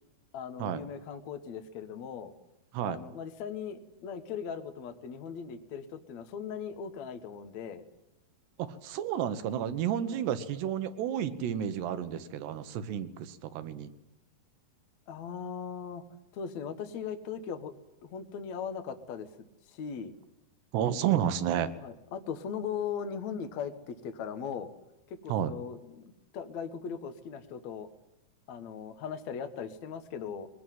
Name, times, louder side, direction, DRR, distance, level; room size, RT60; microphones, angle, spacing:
voice 1, 0.3-2.3 2.8-7.8 10.1-10.2 15.1-16.0 16.3-17.7 18.0-19.3 19.7-20.1 21.8-24.7 25.1-27.9 28.5-30.5, left 7 dB, 55° left, 9 dB, 2.2 m, -39 dB
voice 2, 8.6-13.9 20.7-21.7 25.3-25.5, right 10 dB, 85° right, 11 dB, 3.4 m, -31 dB
22.0 x 19.5 x 9.4 m, 0.93 s
omnidirectional pair, 4.7 m